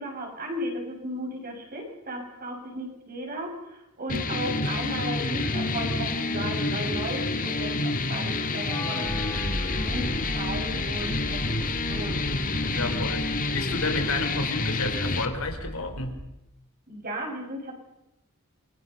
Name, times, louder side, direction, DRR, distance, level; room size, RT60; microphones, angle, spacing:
voice 1, 0.0-11.6 11.9-12.2 16.9-17.7, right 1 dB, 45° right, 0 dB, 7.5 m, -35 dB
sound 1, 4.1-15.3, left 3 dB, 40° left, 1.9 m, -28 dB
Wind instrument woodwind instrument, 8.6-14.7, left 2 dB, 20° left, 3.9 m, -46 dB
sound 2, 9.0-16.2, equal, 10° right, 5.6 m, -37 dB
voice 2, 12.7-16.2, left 2 dB, 75° left, 5 dB, 4.1 m, -31 dB
28.0 x 23.0 x 5.6 m, 0.89 s
head